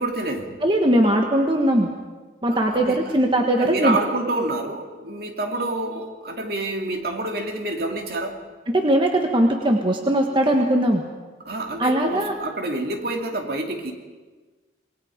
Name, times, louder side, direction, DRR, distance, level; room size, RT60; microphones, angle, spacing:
voice 1, 0.0-0.6 2.7-3.1 3.6-8.4 11.5-13.9, right 2 dB, 60° right, 2 dB, 2.6 m, -28 dB
voice 2, 0.6-1.9 2.4-4.0 8.7-11.0 11.8-12.3, right 1 dB, 30° right, 2 dB, 1.4 m, -20 dB
27.0 x 20.0 x 5.1 m, 1.3 s
head